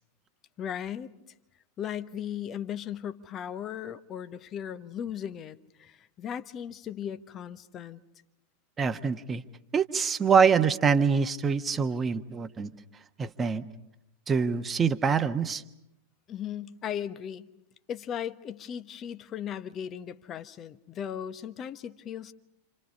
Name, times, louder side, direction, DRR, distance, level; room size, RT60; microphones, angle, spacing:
voice 1, 0.6-1.1 1.8-8.0 16.3-17.5 17.9-22.3, left 9 dB, 30° left, 1.2 m, -37 dB
voice 2, 8.8-9.4 9.7-12.7 13.2-13.6 14.3-15.6, right 6 dB, 20° right, 1.2 m, -25 dB
29.5 x 27.5 x 5.5 m
figure-of-eight pair, 90°, 0 cm